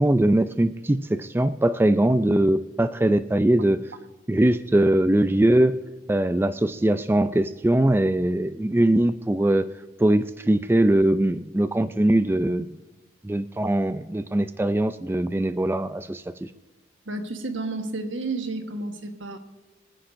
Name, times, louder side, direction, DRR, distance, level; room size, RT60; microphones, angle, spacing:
voice 1, 0.0-3.8 4.3-5.8 6.1-9.7 10.0-12.7 13.2-16.5, right 1 dB, 10° right, 12 dB, 0.3 m, -21 dB
voice 2, 17.1-19.4, right 2 dB, 85° right, 6 dB, 1.3 m, -31 dB
25.0 x 9.9 x 2.6 m, 1.1 s
head